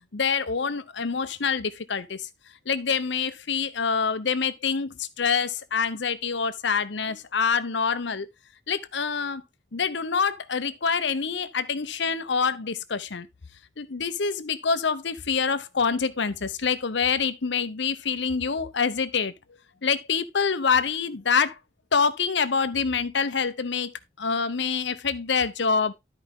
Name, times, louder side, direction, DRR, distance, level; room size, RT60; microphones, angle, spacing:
voice 1, 0.1-2.3 2.7-8.3 8.7-9.4 9.7-13.3 13.8-19.3 19.8-21.6 21.9-23.9 24.2-25.9, left 5 dB, 70° left, 0.8 m, -26 dB
12.5 x 5.1 x 3.6 m
head